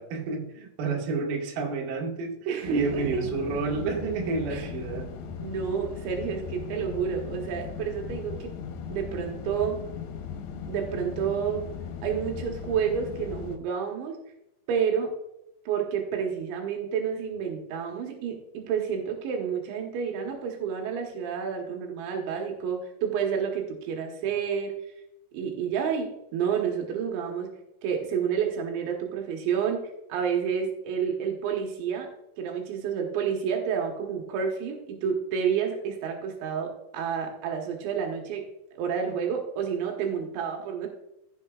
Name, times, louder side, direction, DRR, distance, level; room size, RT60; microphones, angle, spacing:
voice 1, 0.0-2.3 2.6-5.1, right 4 dB, 60° right, -1 dB, 3.2 m, -30 dB
voice 2, 2.5-3.2 4.5-4.7 5.4-8.5 8.9-9.8 10.7-11.6 12.0-14.2 14.7-15.1 15.7-24.8 25.3-27.5 27.8-32.1 32.4-38.5 38.8-40.9, right 7 dB, 85° right, 2 dB, 3.5 m, -29 dB
sound 1, 2.6-13.6, left 6 dB, 75° left, 2.9 m, -38 dB
15.0 x 7.1 x 2.4 m, 0.86 s
omnidirectional pair, 5.1 m